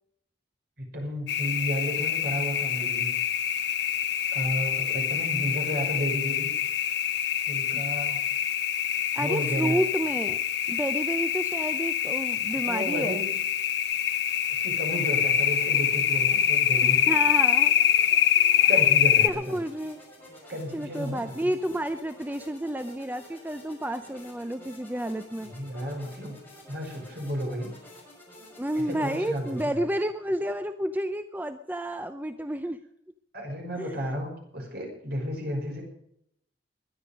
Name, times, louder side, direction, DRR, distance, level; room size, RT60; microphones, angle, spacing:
voice 1, 0.8-3.1 4.3-6.5 7.4-8.2 9.2-9.8 12.5-13.3 14.5-17.1 18.7-19.6 20.5-21.5 25.6-26.3 26.7-27.7 28.7-29.8 33.3-35.8, equal, 55° right, 1 dB, 5.8 m, -32 dB
sound 1, 1.3-19.3, left 9 dB, 60° left, 1.1 m, -25 dB
voice 2, 9.1-10.4 10.7-13.2 16.8-17.7 18.7-18.9 19.2-20.0 20.7-25.5 28.6-32.8 33.8-34.1, right 1 dB, 10° right, 9 dB, 0.6 m, -30 dB
sound 2, 14.8-29.6, left 1 dB, 10° left, 6.1 m, -50 dB
21.0 x 10.0 x 5.2 m, 0.73 s
head